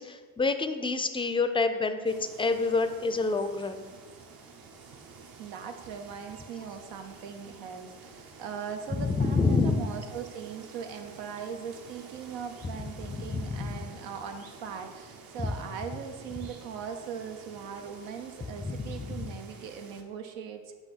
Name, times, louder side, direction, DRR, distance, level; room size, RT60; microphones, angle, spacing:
voice 1, 0.0-3.8 9.0-9.8 13.1-13.7 15.4-15.5 18.6-19.3, left 3 dB, 15° left, 9 dB, 0.4 m, -28 dB
sound 1, 2.0-20.0, right 4 dB, 55° right, 0.9 m, -50 dB
voice 2, 5.4-20.7, right 7 dB, 85° right, 5 dB, 0.8 m, -40 dB
7.9 x 2.7 x 5.9 m, 1.5 s
cardioid pair, 80°, 44 cm